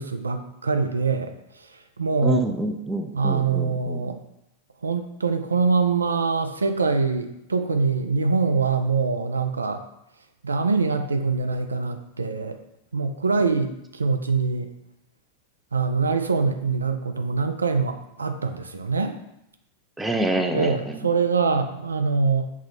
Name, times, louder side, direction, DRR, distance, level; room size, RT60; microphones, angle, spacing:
voice 1, 0.0-2.5 3.1-4.2 4.8-9.8 10.4-12.6 12.9-14.7 15.7-19.2 20.5-22.5, right 4 dB, 75° right, 7 dB, 0.3 m, -24 dB
voice 2, 2.2-4.1 20.0-21.0, right 1 dB, 5° right, 4 dB, 0.4 m, -27 dB
6.1 x 2.1 x 3.8 m, 0.83 s
figure-of-eight pair, 90°, 0 cm